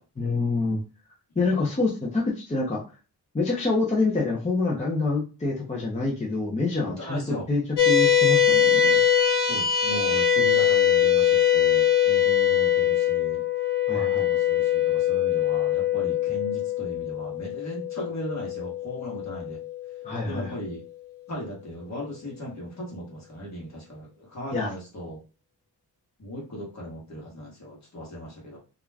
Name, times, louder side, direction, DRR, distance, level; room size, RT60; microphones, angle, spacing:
voice 1, 0.2-0.8 1.4-2.8 3.3-9.0 13.9-14.2 20.0-20.5 24.5-24.7, left 3 dB, 20° left, -4 dB, 0.5 m, -26 dB
voice 2, 6.8-7.4 9.4-13.4 13.9-19.6 20.3-20.8 21.3-25.2 26.2-28.6, equal, 45° left, -2 dB, 1.0 m, -37 dB
sound 1, 7.8-20.4, left 9 dB, 75° left, 0.7 m, -22 dB
2.4 x 2.1 x 3.2 m, 0.33 s
wide cardioid pair, 180°, 40 cm